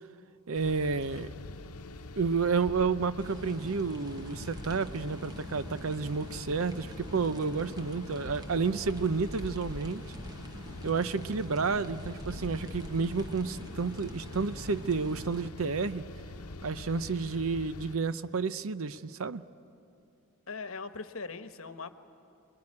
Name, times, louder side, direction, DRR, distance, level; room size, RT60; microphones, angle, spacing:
sound 1, 0.5-17.9, left 2 dB, 85° left, 0.9 m, -44 dB
voice 1, 0.5-1.3 2.2-10.0 10.8-16.0 16.6-19.4, right 4 dB, 65° right, 0.7 m, -31 dB
sound 2, 3.2-15.5, right 1 dB, 20° right, 0.9 m, -46 dB
voice 2, 20.5-21.9, left 4 dB, 65° left, 1.1 m, -40 dB
26.5 x 21.0 x 9.8 m
head